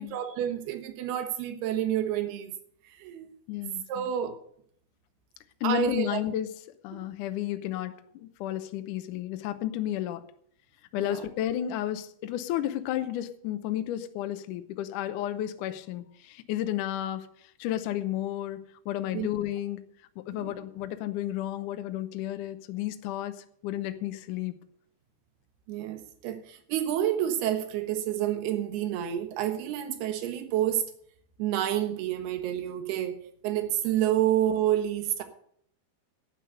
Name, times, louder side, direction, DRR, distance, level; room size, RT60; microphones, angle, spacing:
voice 1, 0.0-2.5 3.0-3.3 3.9-4.4 5.6-6.2 11.0-11.2 19.1-19.3 20.3-20.5 25.7-30.9 31.4-33.2 33.4-35.2, right 11 dB, 80° right, 3.3 m, -29 dB
voice 2, 3.5-4.1 5.6-6.5 6.8-10.2 10.9-17.3 17.6-19.8 20.3-23.4 23.6-24.6 34.2-34.3, left 12 dB, 80° left, 1.9 m, -32 dB
11.5 x 9.5 x 6.7 m
omnidirectional pair, 4.5 m